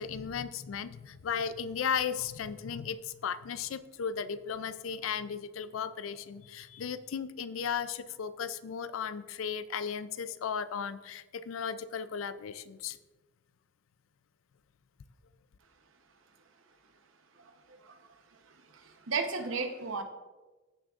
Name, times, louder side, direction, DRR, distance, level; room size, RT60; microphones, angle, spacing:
voice 1, 0.0-13.0, left 7 dB, 90° left, 14 dB, 0.4 m, -35 dB
voice 2, 18.7-20.0, right 4 dB, 85° right, 6 dB, 0.9 m, -34 dB
14.5 x 6.1 x 2.5 m, 1.2 s
head